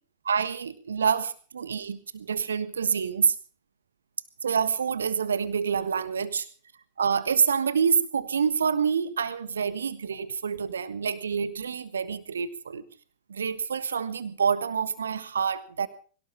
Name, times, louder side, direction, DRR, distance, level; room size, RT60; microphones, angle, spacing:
voice 1, 0.2-3.3 4.4-6.5 7.0-12.8 13.3-15.9, right 6 dB, 70° right, 15 dB, 1.4 m, -27 dB
22.0 x 18.0 x 3.6 m, 0.41 s
figure-of-eight pair, 90°, 0 cm